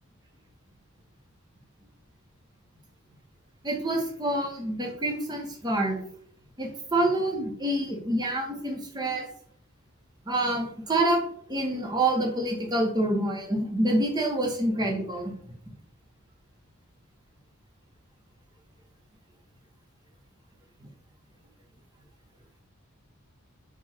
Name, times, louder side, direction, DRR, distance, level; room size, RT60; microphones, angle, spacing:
voice 1, 3.6-6.0 6.6-9.3 10.2-11.2 11.5-15.3, right 1 dB, 20° right, 0 dB, 0.8 m, -27 dB
4.7 x 2.4 x 4.2 m, 0.62 s
head